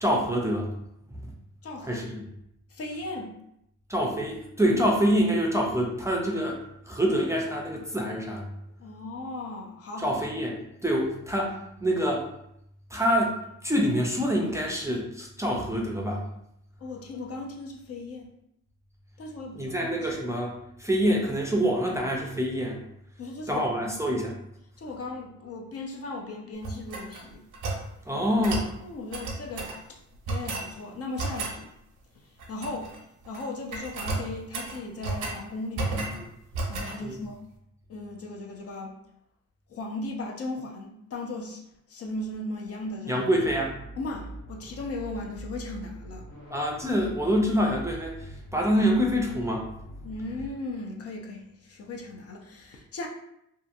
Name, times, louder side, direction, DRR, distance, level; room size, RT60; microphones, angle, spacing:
voice 1, 0.0-0.7 1.1-1.3 1.8-2.2 3.9-6.6 6.9-8.5 10.0-12.3 12.9-13.3 13.6-16.3 19.5-22.8 23.5-24.3 28.1-28.7 36.1-36.3 37.0-37.2 43.1-43.7 46.5-49.7, equal, 10° right, -1 dB, 0.5 m, -26 dB
voice 2, 1.6-2.0 2.7-3.4 8.8-10.1 16.8-18.3 19.2-20.1 23.2-24.0 24.8-27.5 28.1-28.4 28.8-30.0 30.3-31.7 32.5-32.9 33.3-36.2 36.7-37.4 37.9-39.0 39.7-41.6 41.9-43.2 44.0-46.3 50.0-53.1, left 2 dB, 50° left, 0 dB, 0.6 m, -37 dB
sound 1, 26.6-27.9 28.4-28.7 29.1-29.8 30.3-30.7 31.2-31.6 32.4-33.0 33.2-33.5 33.7-35.4 35.7-36.2 36.5-37.0, right 3 dB, 85° right, 0.7 m, -32 dB
sound 2, 43.4-50.5, right 1 dB, 65° left, 1.0 m, -43 dB
2.7 x 2.6 x 2.5 m, 0.77 s
cardioid pair, 90°, 30 cm